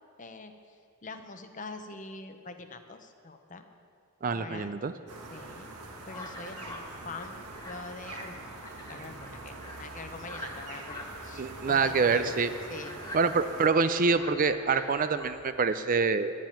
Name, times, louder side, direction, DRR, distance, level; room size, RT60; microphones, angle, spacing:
voice 1, 0.2-0.8 1.0-3.7 4.3-4.7 5.3-5.7 6.1-6.8 7.0-8.3 8.6-12.3 12.7-12.9, left 3 dB, 35° left, 7 dB, 0.8 m, -44 dB
voice 2, 4.2-4.9 11.4-12.5 13.1-16.3, right 4 dB, 35° right, 11 dB, 0.4 m, -26 dB
sound 1, 5.1-13.7, right 2 dB, 80° right, 1.7 m, -44 dB
sound 2, 6.1-15.8, left 1 dB, 15° left, 1.7 m, -45 dB
12.0 x 7.5 x 9.2 m, 2.4 s
head